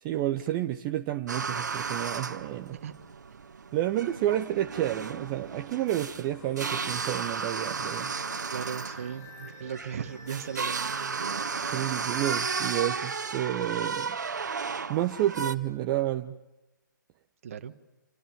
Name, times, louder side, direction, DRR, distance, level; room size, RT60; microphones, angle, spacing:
voice 1, 0.0-2.8 3.7-8.1 11.7-14.2 14.9-16.4, right 13 dB, 25° right, 0.8 m, -30 dB
sound 1, 1.3-15.6, right 5 dB, 60° right, 1.7 m, -34 dB
sound 2, 6.3-14.9, left 3 dB, 50° left, 7.1 m, -51 dB
voice 2, 8.5-11.2 17.4-17.7, right 8 dB, 45° right, 1.8 m, -37 dB
29.5 x 26.5 x 7.3 m
figure-of-eight pair, 135°, 11 cm